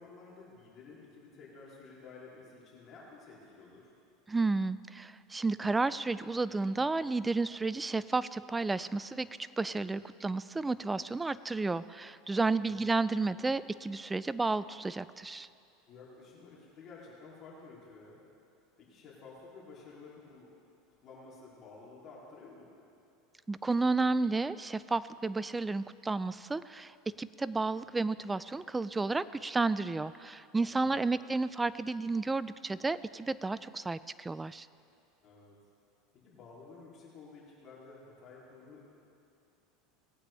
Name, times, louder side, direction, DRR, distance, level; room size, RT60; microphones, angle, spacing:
voice 1, 0.0-3.9 12.6-13.0 15.9-18.2 18.8-20.5 21.0-22.7 30.6-31.1 35.2-35.6 36.1-38.8, left 4 dB, 40° left, -6 dB, 3.1 m, -52 dB
voice 2, 4.3-9.3 9.6-15.5 23.5-34.7, right 3 dB, 10° right, 16 dB, 0.3 m, -32 dB
19.0 x 8.6 x 3.4 m, 2.6 s
supercardioid pair, 115°, 0 cm